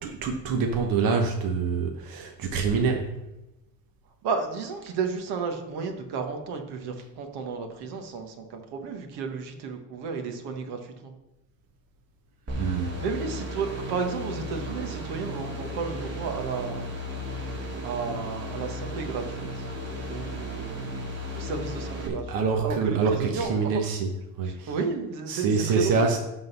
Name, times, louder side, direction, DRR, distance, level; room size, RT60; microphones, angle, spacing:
voice 1, 0.0-3.1 12.6-12.9 22.1-24.1 24.4-24.7 25.3-26.2, right 5 dB, 60° right, 2 dB, 1.2 m, -26 dB
voice 2, 4.2-11.1 13.0-16.9 17.8-19.7 20.1-21.1 21.3-23.8 24.4-26.2, right 5 dB, 75° right, 5 dB, 1.5 m, -33 dB
sound 1, 12.5-22.1, equal, 35° right, 3.0 m, -35 dB
12.0 x 4.0 x 5.4 m, 0.98 s
cardioid pair, 110°, 39 cm